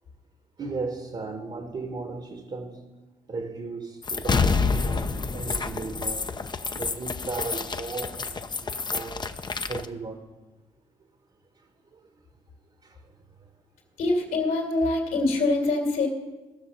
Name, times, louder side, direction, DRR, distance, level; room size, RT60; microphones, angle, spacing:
voice 1, 0.6-2.9 3.3-6.3 6.7-9.3 9.7-10.3 11.9-12.0 12.8-13.0, right 3 dB, 40° right, 1.4 m, -36 dB
sound 1, 4.0-9.8, left 4 dB, 30° left, 0.7 m, -28 dB
voice 2, 14.0-16.1, left 2 dB, 70° left, 2.6 m, -24 dB
16.0 x 6.4 x 5.4 m
hypercardioid pair, 45°, 15 cm